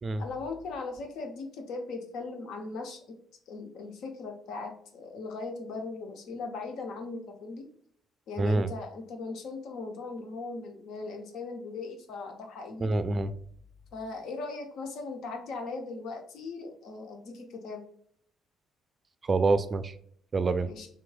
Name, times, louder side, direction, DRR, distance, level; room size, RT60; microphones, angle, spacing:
voice 1, 0.2-3.2 3.5-7.7 8.3-13.0 13.9-17.8 20.7-20.9, left 3 dB, 70° left, 4 dB, 0.7 m, -39 dB
voice 2, 8.4-8.7 12.8-13.4 19.2-19.9 20.3-20.7, right 3 dB, 40° right, 12 dB, 0.4 m, -26 dB
3.5 x 3.1 x 2.2 m, 0.65 s
hypercardioid pair, 60°, 0 cm